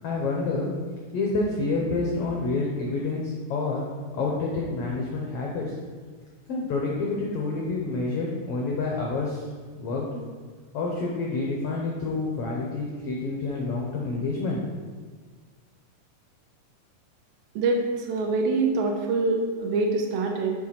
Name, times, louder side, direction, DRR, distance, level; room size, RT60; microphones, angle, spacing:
voice 1, 0.0-0.7 1.1-3.8 4.1-5.7 6.5-9.4 9.7-10.1 10.7-14.6, left 3 dB, 85° left, -2 dB, 1.3 m, -28 dB
voice 2, 17.6-20.5, right 3 dB, 85° right, 1 dB, 2.7 m, -25 dB
7.5 x 3.8 x 5.7 m, 1.5 s
omnidirectional pair, 3.9 m